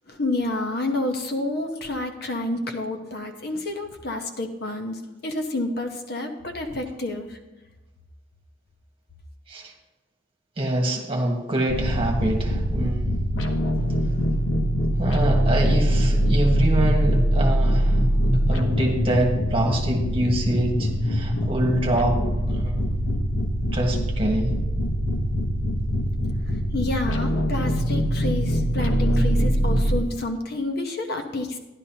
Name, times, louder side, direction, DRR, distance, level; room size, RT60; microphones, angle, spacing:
voice 1, 0.1-7.4 26.7-31.6, left 2 dB, 55° left, 4 dB, 1.0 m, -29 dB
voice 2, 10.6-13.1 15.0-18.0 18.5-22.2 22.5-22.9 23.6-24.5, right 1 dB, 30° right, 0 dB, 1.5 m, -25 dB
sound 1, 11.7-30.0, equal, 85° left, 1.1 m, -23 dB
12.0 x 11.0 x 2.9 m, 1.1 s
head